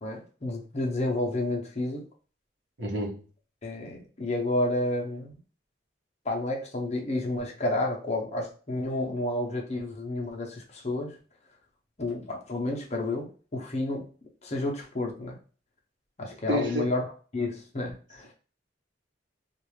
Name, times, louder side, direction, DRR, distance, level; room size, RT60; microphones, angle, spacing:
voice 1, 0.0-2.0 3.6-5.4 6.2-11.2 12.0-14.1 14.4-15.4 16.2-17.1 17.3-18.3, left 2 dB, 40° left, 0 dB, 0.7 m, -30 dB
voice 2, 2.8-3.2 16.5-16.9, equal, 75° right, -2 dB, 1.0 m, -29 dB
2.5 x 2.4 x 3.1 m, 0.39 s
head